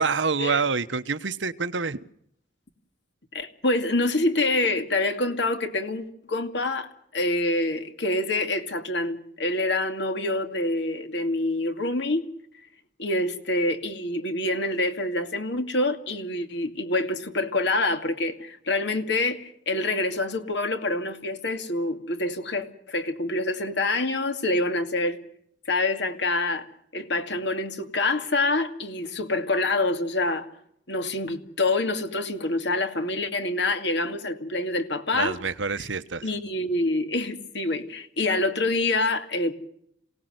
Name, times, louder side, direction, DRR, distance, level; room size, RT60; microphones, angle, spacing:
voice 1, 0.0-2.0 35.1-36.2, right 5 dB, 90° right, 1.1 m, -26 dB
voice 2, 3.3-12.3 13.0-25.2 25.6-26.7 26.9-30.5 30.9-35.4 35.7-35.9 36.2-39.5, left 2 dB, 70° left, 2.4 m, -26 dB
27.5 x 18.0 x 8.0 m
head